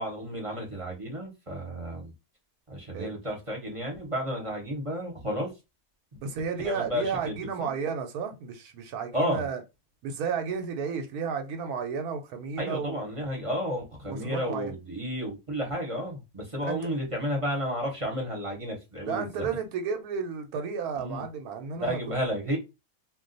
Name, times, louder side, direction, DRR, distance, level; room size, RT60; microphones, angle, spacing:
voice 1, 0.0-2.1 2.7-5.5 6.6-7.7 9.1-9.5 12.6-19.5 20.9-21.2 21.7-22.6, equal, 25° right, 0.8 m, -32 dB
voice 2, 6.2-9.6 10.0-13.0 14.1-14.7 16.6-16.8 19.0-22.0, right 6 dB, 85° right, 1.1 m, -32 dB
2.4 x 2.3 x 3.9 m
omnidirectional pair, 1.6 m